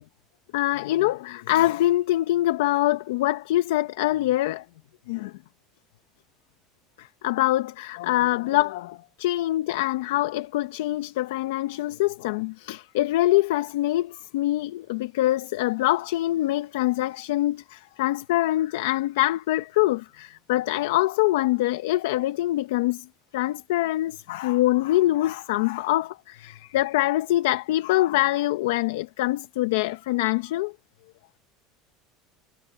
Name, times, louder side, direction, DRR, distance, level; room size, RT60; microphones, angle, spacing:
voice 1, 0.5-4.6 5.1-5.3 7.0-23.1 23.3-30.7, left 16 dB, 90° left, 0.8 m, -24 dB
supercardioid pair, 135°, 0 cm